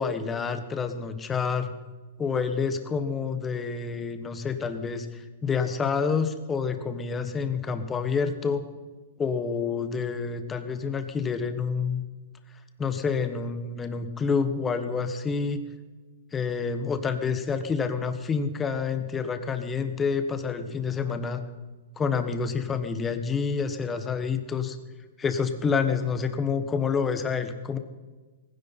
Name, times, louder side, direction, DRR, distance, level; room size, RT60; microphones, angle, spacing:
voice 1, 0.0-1.7 2.2-5.1 5.4-8.6 9.2-12.0 12.8-15.6 16.3-21.4 22.0-24.7 25.2-27.8, left 5 dB, 15° left, 8 dB, 1.5 m, -28 dB
18.5 x 16.0 x 4.4 m, 1.3 s
hypercardioid pair, 135°, 0 cm